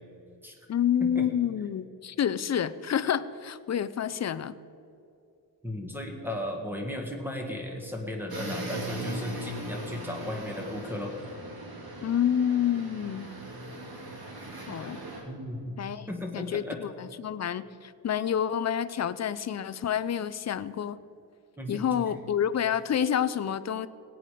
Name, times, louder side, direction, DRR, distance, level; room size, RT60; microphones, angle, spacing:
voice 1, 0.7-4.5 12.0-13.3 14.7-15.0 15.8-16.1 16.3-21.0 21.7-23.9, left 9 dB, 40° left, 14 dB, 0.4 m, -28 dB
voice 2, 5.6-11.1 15.3-15.8 16.1-16.8 21.6-21.8, left 1 dB, 5° right, 1 dB, 1.7 m, -35 dB
sound 1, 8.3-15.2, right 1 dB, 55° right, 2.5 m, -39 dB
17.5 x 9.3 x 5.0 m, 2.7 s
wide cardioid pair, 160°, 43 cm